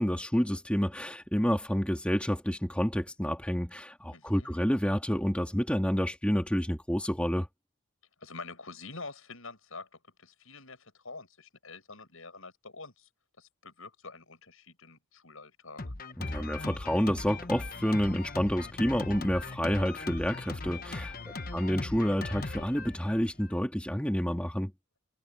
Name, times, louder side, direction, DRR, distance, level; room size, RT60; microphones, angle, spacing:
voice 1, 0.0-7.5 16.2-24.7, equal, 5° left, 2.4 m, -29 dB
voice 2, 4.1-4.6 8.2-9.9 10.2-13.1 13.4-15.8 21.2-21.7, left 3 dB, 75° left, 6.8 m, -47 dB
Drum kit, 15.8-23.6, left 3 dB, 40° left, 1.2 m, -39 dB
head